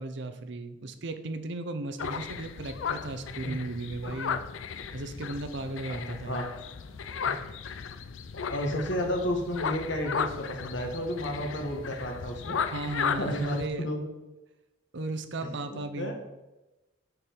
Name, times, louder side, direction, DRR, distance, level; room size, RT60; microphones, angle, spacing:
voice 1, 0.0-4.4 4.9-6.4 12.7-13.9 14.9-16.2, right 2 dB, 65° right, 9 dB, 0.7 m, -36 dB
sound 1, 2.0-13.7, left 6 dB, 90° left, 0.5 m, -35 dB
voice 2, 5.9-6.4 8.3-12.6 13.2-14.1 15.4-16.2, equal, 65° left, 3 dB, 1.4 m, -32 dB
6.8 x 5.3 x 4.5 m, 1.0 s
head